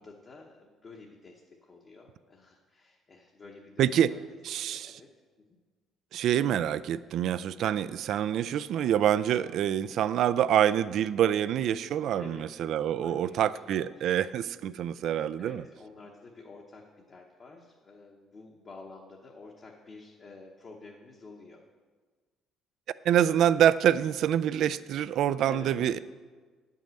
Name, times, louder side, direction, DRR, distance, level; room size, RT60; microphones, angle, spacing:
voice 1, 0.0-4.4 4.7-5.1 5.4-5.5 12.2-12.5 12.8-14.0 15.4-21.6 25.4-25.7, left 3 dB, 35° left, -1 dB, 1.0 m, -50 dB
voice 2, 3.8-4.1 4.4-4.9 6.1-15.6 23.0-26.0, right 10 dB, 60° right, 16 dB, 0.3 m, -26 dB
10.0 x 5.5 x 7.6 m, 1.5 s
cardioid pair, 140°, 0 cm